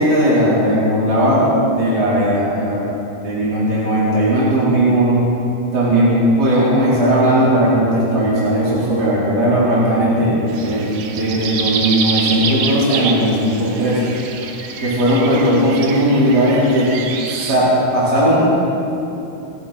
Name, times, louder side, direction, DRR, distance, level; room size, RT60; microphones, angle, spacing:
voice 1, 0.0-2.8 3.2-5.2 5.7-14.0 14.8-16.9 17.3-18.5, right 1 dB, 25° right, -9 dB, 4.1 m, -16 dB
sound 1, 10.5-17.5, right 5 dB, 70° right, 2.1 m, -26 dB
26.5 x 12.0 x 4.3 m, 2.8 s
omnidirectional pair, 4.8 m